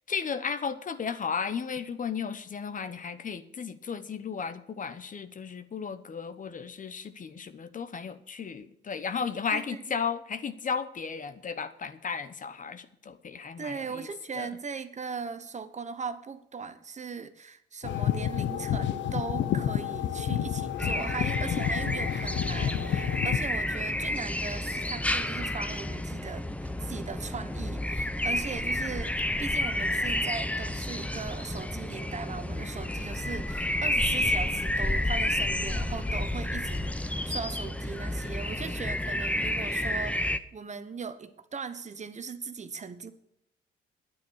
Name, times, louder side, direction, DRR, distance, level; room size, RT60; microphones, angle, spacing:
voice 1, 0.1-14.1 14.4-14.5, left 6 dB, 40° left, 1.0 m, -34 dB
voice 2, 9.5-9.9 13.6-43.1, right 5 dB, 35° right, 1.1 m, -39 dB
sound 1, 17.8-23.4, left 10 dB, 70° left, 0.9 m, -30 dB
sound 2, 20.8-40.4, left 1 dB, 5° left, 0.8 m, -30 dB
9.8 x 9.3 x 6.5 m
cardioid pair, 90°, 20 cm